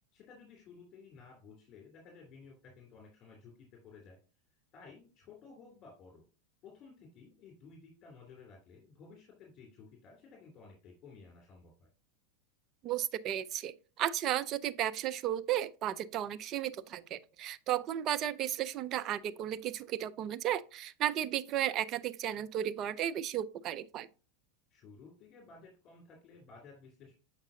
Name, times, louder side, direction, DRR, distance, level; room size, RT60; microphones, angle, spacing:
voice 1, 0.1-4.2 4.7-6.2 6.6-11.9 24.7-27.1, left 4 dB, 40° left, 2.7 m, -55 dB
voice 2, 12.8-24.1, right 11 dB, 40° right, 0.5 m, -34 dB
7.2 x 5.3 x 2.7 m
hypercardioid pair, 90°, 0 cm